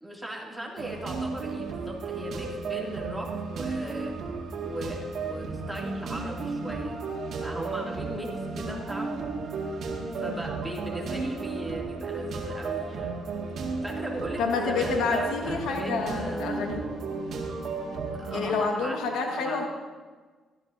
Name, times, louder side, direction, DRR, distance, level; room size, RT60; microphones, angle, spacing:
voice 1, 0.0-4.1 4.6-7.0 7.4-9.9 10.2-13.2 13.8-16.6 18.2-19.0 19.3-19.6, right 1 dB, 5° right, -3 dB, 2.4 m, -38 dB
sound 1, 0.8-18.5, right 3 dB, 70° right, 1.9 m, -34 dB
voice 2, 14.4-16.8 18.3-19.7, left 4 dB, 90° left, 2 dB, 1.5 m, -28 dB
16.0 x 13.0 x 2.7 m, 1.4 s
cardioid pair, 90°, 0 cm